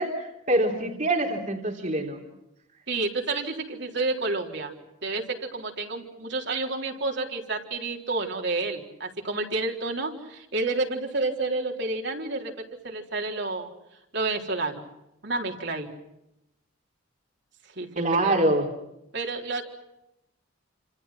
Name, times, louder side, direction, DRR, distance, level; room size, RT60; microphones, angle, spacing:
voice 1, 0.0-2.2 17.9-18.7, right 1 dB, 40° right, 1 dB, 3.4 m, -25 dB
voice 2, 2.9-4.7 5.0-12.5 12.8-13.7 14.1-14.8 15.2-15.9 17.8-17.9 18.2-18.3 19.1-19.6, right 3 dB, 55° right, 1 dB, 4.0 m, -29 dB
29.5 x 27.5 x 6.0 m, 0.85 s
head